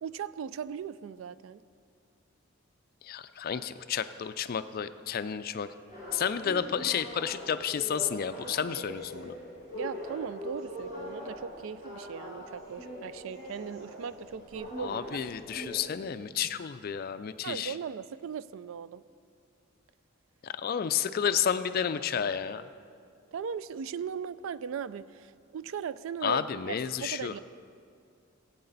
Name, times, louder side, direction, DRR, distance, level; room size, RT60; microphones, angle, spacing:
voice 1, 0.0-1.6 9.7-15.2 17.4-19.0 23.3-26.8 27.0-27.4, right 7 dB, 65° right, 16 dB, 0.3 m, -38 dB
voice 2, 3.0-5.7 6.1-9.3 14.8-17.7 20.4-22.6 26.2-27.3, left 8 dB, 45° left, 12 dB, 0.3 m, -31 dB
sound 1, 5.9-15.8, left 1 dB, 30° right, 3.4 m, -42 dB
16.5 x 8.6 x 4.0 m, 2.3 s
head